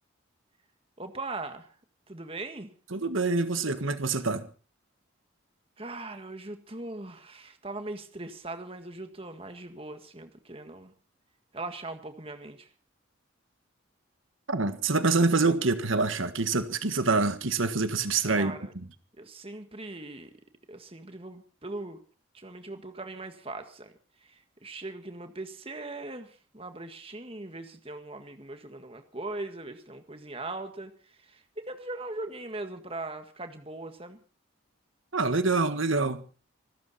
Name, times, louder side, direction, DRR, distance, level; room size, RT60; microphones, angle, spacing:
voice 1, 1.0-1.7 2.1-2.7 5.8-10.9 11.5-12.7 18.2-18.7 19.2-20.3 20.7-22.0 22.3-23.9 24.2-34.2, right 2 dB, 30° right, 7 dB, 1.8 m, -40 dB
voice 2, 2.9-4.5 14.5-18.8 35.1-36.2, right 3 dB, 80° right, 10 dB, 1.6 m, -26 dB
26.0 x 13.0 x 4.3 m, 0.38 s
head